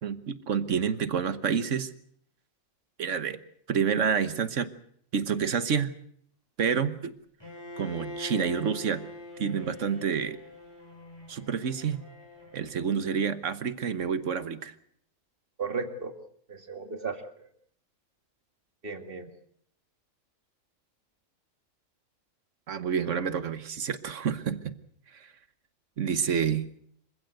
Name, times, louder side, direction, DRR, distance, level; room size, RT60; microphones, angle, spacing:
voice 1, 0.0-1.9 3.0-3.4 3.7-4.7 5.1-5.9 6.6-7.1 7.8-9.0 9.4-10.4 11.3-12.0 12.5-14.7 22.7-24.8 25.1-25.3 26.0-26.7, right 7 dB, 65° right, 13 dB, 1.4 m, -28 dB
Bowed string instrument, 7.4-13.4, left 2 dB, 15° left, 5.7 m, -44 dB
voice 2, 15.6-16.1 16.5-17.5 18.8-19.3, right 4 dB, 40° right, 7 dB, 2.3 m, -35 dB
26.5 x 16.0 x 7.8 m, 0.65 s
omnidirectional pair, 1.4 m